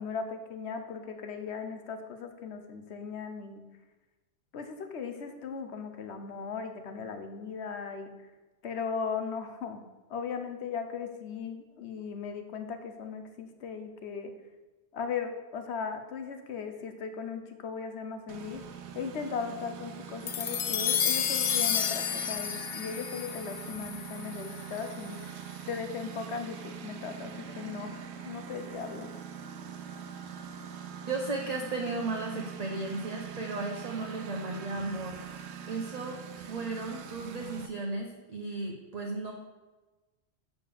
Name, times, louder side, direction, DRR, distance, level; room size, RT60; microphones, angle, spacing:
voice 1, 0.0-3.6 4.5-8.1 8.6-9.8 10.1-14.3 14.9-18.6 18.9-25.2 25.7-29.1, left 6 dB, 75° left, 7 dB, 1.2 m, -37 dB
Engine, 18.3-37.7, right 7 dB, 75° right, 1.0 m, -43 dB
sound 1, 20.3-24.8, left 8 dB, 55° left, 0.6 m, -31 dB
voice 2, 31.1-35.2 35.7-39.3, right 3 dB, 40° right, 0 dB, 0.8 m, -35 dB
6.7 x 5.1 x 6.9 m, 1.2 s
omnidirectional pair, 1.1 m